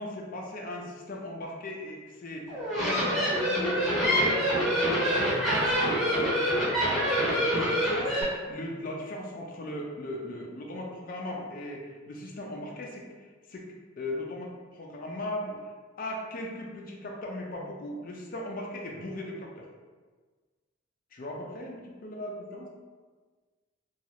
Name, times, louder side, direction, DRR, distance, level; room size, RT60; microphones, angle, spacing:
voice 1, 0.0-3.1 3.4-5.2 5.6-5.9 6.1-6.4 6.8-13.6 14.0-15.7 16.0-19.7 21.1-22.7, left 1 dB, 45° left, -1 dB, 0.4 m, -38 dB
sound 1, 2.5-8.2, equal, ahead, 0.9 m, -26 dB
3.0 x 2.3 x 2.8 m, 1.4 s
head